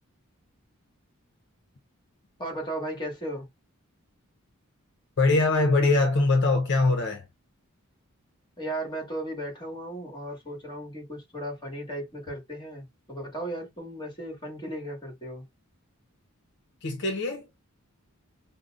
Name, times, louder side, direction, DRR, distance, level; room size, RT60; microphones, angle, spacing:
voice 1, 2.4-3.5 8.6-15.4, right 1 dB, 20° left, 1.6 m, -36 dB
voice 2, 5.2-7.3 16.8-17.5, left 3 dB, 55° left, 0.6 m, -22 dB
5.2 x 2.0 x 2.4 m
head